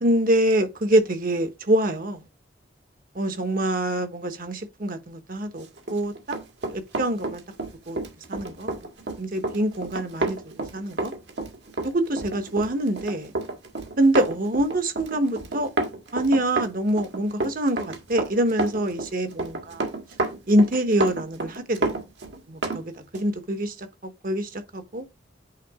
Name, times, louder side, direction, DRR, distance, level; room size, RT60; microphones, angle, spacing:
voice 1, 0.0-2.2 3.1-6.1 6.7-7.4 7.9-8.0 8.3-8.7 9.2-11.1 11.9-13.3 14.0-15.7 16.1-19.9 20.5-21.9 22.5-25.0, right 1 dB, 50° right, 1.3 m, -25 dB
Run, 5.8-22.8 23.1-23.3, right 2 dB, 65° right, 1.7 m, -30 dB
9.3 x 3.9 x 3.7 m
head